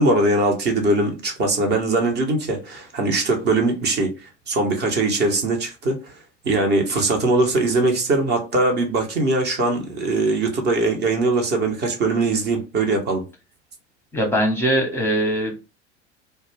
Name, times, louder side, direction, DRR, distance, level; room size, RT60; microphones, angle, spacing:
voice 1, 0.0-6.1 6.4-13.2, right 2 dB, 30° right, 0.8 m, -21 dB
voice 2, 14.1-15.6, right 1 dB, 5° left, 0.8 m, -21 dB
2.3 x 2.2 x 3.2 m
figure-of-eight pair, 75°, 34 cm